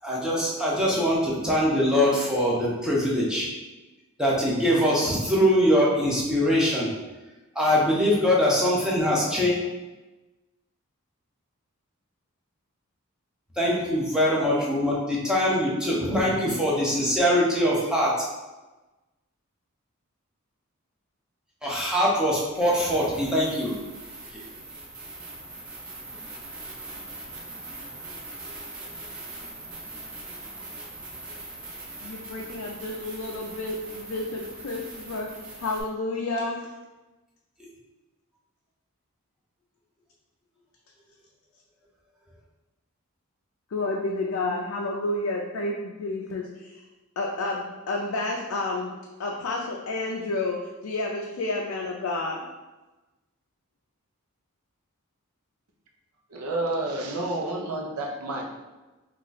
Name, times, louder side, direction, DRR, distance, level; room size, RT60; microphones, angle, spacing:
voice 1, 0.0-3.5 4.2-6.9 7.5-9.6 13.5-18.1 21.6-23.8 24.3-24.4, equal, 5° right, -6 dB, 0.6 m, -23 dB
sound 1, 22.5-35.8, right 2 dB, 40° right, 0.8 m, -41 dB
voice 2, 32.0-36.7 43.7-46.8 47.2-48.9 49.2-52.5, left 2 dB, 70° left, -1 dB, 0.4 m, -30 dB
voice 3, 56.3-58.5, right 2 dB, 90° right, 1 dB, 0.6 m, -29 dB
3.0 x 2.4 x 3.9 m, 1.1 s
head